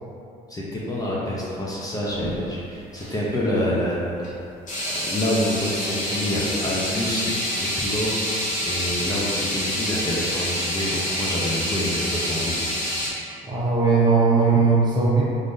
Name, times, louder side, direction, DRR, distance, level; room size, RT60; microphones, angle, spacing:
voice 1, 0.5-4.3 4.8-7.3 7.6-8.3 8.6-12.9, left 1 dB, 20° left, -6 dB, 0.5 m, -27 dB
sound 1, 2.1-2.4 2.9-3.1 4.2-4.3 4.7-13.1, left 1 dB, 50° left, 0.9 m, -27 dB
voice 2, 13.5-15.2, right 4 dB, 25° right, -6 dB, 0.7 m, -18 dB
3.4 x 2.5 x 2.6 m, 2.6 s
cardioid pair, 110°, 17 cm